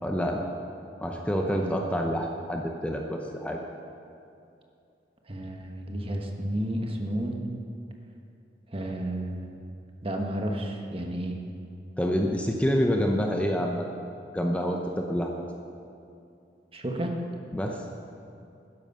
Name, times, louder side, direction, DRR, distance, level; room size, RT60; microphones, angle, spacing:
voice 1, 0.0-0.4 1.0-3.6 12.0-14.1 14.3-15.3 17.5-17.8, equal, 5° left, 1 dB, 0.7 m, -27 dB
voice 2, 5.3-7.5 8.7-9.5 10.0-11.4 16.7-17.2, right 1 dB, 30° right, 2 dB, 1.2 m, -31 dB
12.5 x 10.5 x 5.5 m, 2.6 s
head